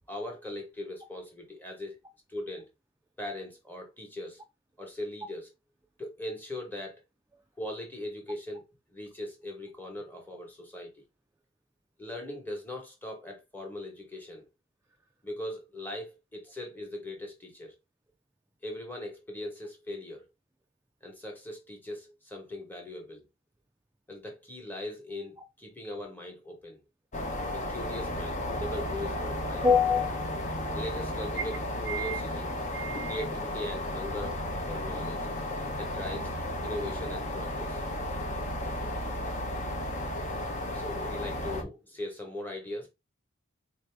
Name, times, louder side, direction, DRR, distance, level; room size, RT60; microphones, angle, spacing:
voice 1, 0.1-2.0 2.3-2.7 3.2-4.4 4.8-5.5 6.0-7.0 7.6-8.6 8.9-11.0 12.0-14.4 15.2-17.7 18.6-20.3 21.0-23.2 24.1-26.8 27.5-29.6 30.7-32.5 33.0-34.4 34.7-35.3 35.8-36.3 36.6-37.8 40.7-42.9, left 1 dB, 10° left, 1.1 m, -40 dB
sound 1, 27.1-41.6, left 1 dB, 35° left, 0.6 m, -34 dB
voice 2, 29.6-30.4 31.9-32.2 32.7-33.2, left 5 dB, 10° right, 0.3 m, -27 dB
3.9 x 2.7 x 3.4 m
head